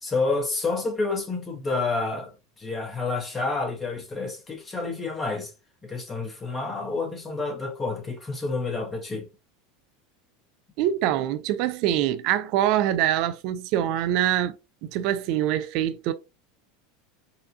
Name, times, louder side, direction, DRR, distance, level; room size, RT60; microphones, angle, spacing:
voice 1, 0.0-5.5 5.8-9.3, left 3 dB, 20° left, 1.4 m, -29 dB
voice 2, 10.8-14.5 14.8-16.1, right 12 dB, 55° right, 0.5 m, -24 dB
4.1 x 2.5 x 2.6 m
figure-of-eight pair, 80°, 0 cm